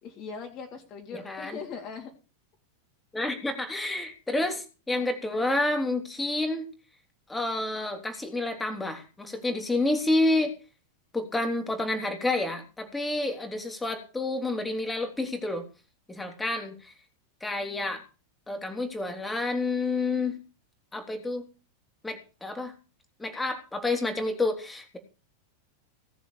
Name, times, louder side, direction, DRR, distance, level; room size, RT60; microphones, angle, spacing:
voice 1, 0.0-2.1, left 5 dB, 35° left, 1 dB, 3.3 m, -40 dB
voice 2, 1.1-1.6 3.1-6.7 7.3-10.5 11.1-15.7 16.1-16.9 17.4-18.0 18.5-20.4 20.9-21.4 22.0-22.7 23.2-25.0, left 2 dB, 10° left, 5 dB, 3.4 m, -29 dB
18.5 x 7.1 x 6.9 m, 0.34 s
figure-of-eight pair, 90°, 0 cm